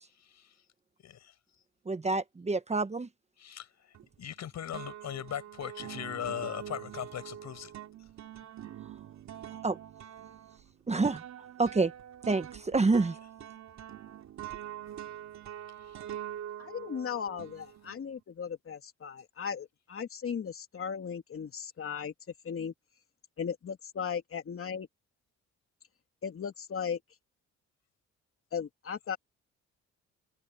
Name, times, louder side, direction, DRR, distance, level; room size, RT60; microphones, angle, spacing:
voice 1, 0.1-0.6 1.0-1.3 3.4-7.7 15.8-16.0, left 10 dB, 65° left, 5.6 m, -39 dB
voice 2, 1.9-3.1 9.6-9.8 10.9-11.2 11.6-11.9 12.3-13.1, right 3 dB, 20° right, 1.2 m, -27 dB
sound 1, 3.9-4.4 4.7-18.1, right 11 dB, 65° right, 3.1 m, -44 dB
voice 3, 16.6-22.1 22.4-22.7 23.4-24.9 26.2-27.0 28.5-29.2, left 7 dB, 45° left, 3.0 m, -37 dB
cardioid pair, 90°, 30 cm